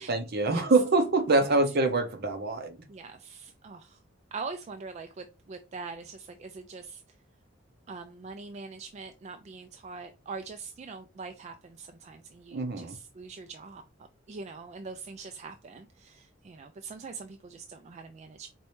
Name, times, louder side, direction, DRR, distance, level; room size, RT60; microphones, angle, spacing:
voice 1, 0.0-2.8 12.5-13.0, right 3 dB, 55° right, 0.7 m, -25 dB
voice 2, 2.9-4.0 4.3-7.0 7.9-13.8 14.3-18.5, right 4 dB, 35° right, 0.3 m, -43 dB
4.5 x 3.1 x 3.1 m
head